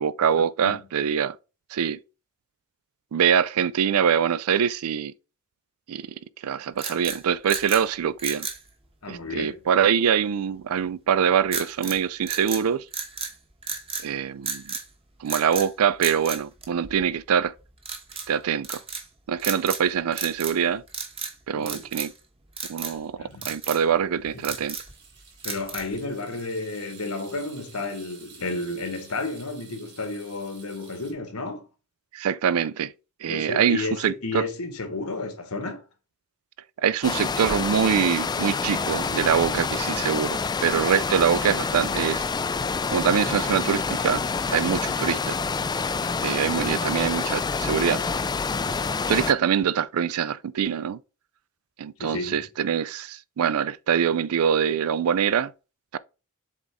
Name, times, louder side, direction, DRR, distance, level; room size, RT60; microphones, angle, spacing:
voice 1, 0.0-1.4 1.7-2.0 3.1-5.1 5.9-6.2 6.4-8.5 9.1-12.8 14.0-14.7 15.2-17.5 18.3-18.8 19.3-20.8 21.5-22.1 22.7-24.8 32.1-32.9 33.2-34.4 36.8-42.2 42.9-44.2 44.5-45.4 46.2-48.0 49.1-51.0 51.8-55.5 55.9-56.0, right 8 dB, 70° right, 0.4 m, -24 dB
sound 1, 6.8-7.9 8.2-8.6 11.5-12.0 12.3-13.3 13.6-14.1 14.5-14.9 15.3-15.7 16.0-17.2 17.8-18.3 18.6-19.1 19.4-19.9 20.1-20.6 20.9-21.3 21.7-22.2 22.6-23.0 23.4-23.8 24.3-24.9 25.4-26.0, right 5 dB, 25° right, 1.1 m, -33 dB
voice 2, 9.0-9.6 21.5-21.9 23.2-23.4 24.3-24.4 25.4-31.6 33.3-35.8 52.0-52.4, left 3 dB, 80° left, 1.4 m, -32 dB
sound 2, 23.3-23.5 23.8-24.0 24.2-31.1, right 5 dB, 55° right, 2.4 m, -51 dB
sound 3, 37.0-49.3, left 4 dB, 20° left, 0.3 m, -27 dB
7.2 x 4.0 x 3.5 m
head